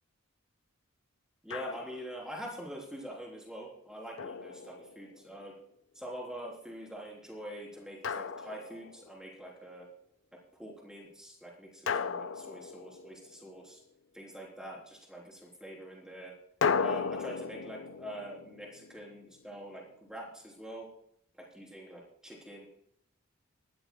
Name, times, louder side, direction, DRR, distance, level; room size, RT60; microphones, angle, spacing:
voice 1, 1.4-5.5 5.9-9.9 10.3-13.8 14.1-16.3 16.7-20.9 21.4-22.7, right 1 dB, 5° right, -2 dB, 3.8 m, -45 dB
Drum, 1.5-2.2 4.2-5.3 8.0-9.2 11.9-13.5 16.6-19.6, left 5 dB, 65° left, 0.5 m, -35 dB
21.5 x 13.0 x 2.3 m, 0.68 s
head